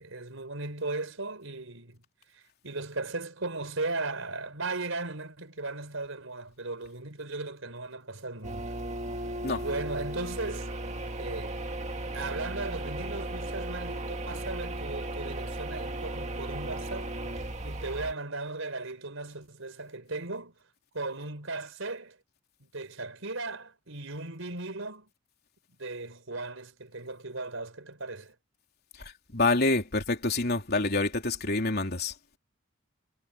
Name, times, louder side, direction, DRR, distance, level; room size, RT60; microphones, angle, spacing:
voice 1, 0.0-2.0 2.3-8.7 9.5-10.7 11.2-11.6 12.1-17.1 17.6-20.6 20.9-22.2 22.6-25.1 25.8-28.3, right 3 dB, 85° right, 4.2 m, -37 dB
sound 1, 8.4-18.1, right 1 dB, 35° right, 1.9 m, -36 dB
voice 2, 29.3-32.4, left 3 dB, 55° left, 3.6 m, -27 dB
head